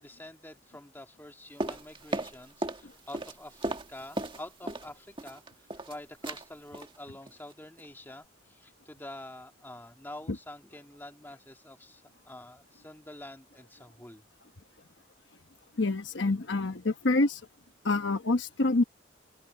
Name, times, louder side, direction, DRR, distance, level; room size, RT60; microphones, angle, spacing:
voice 1, 0.0-14.2, left 1 dB, 10° left, 1.8 m, -47 dB
sound 1, 1.6-2.8 3.1-4.9 5.2-5.9 6.2-6.5 6.7-7.0 7.3-7.5 7.8-7.9, right 1 dB, 25° right, 1.7 m, -35 dB
voice 2, 15.8-17.4 17.8-18.8, left 2 dB, 60° left, 1.1 m, -26 dB
head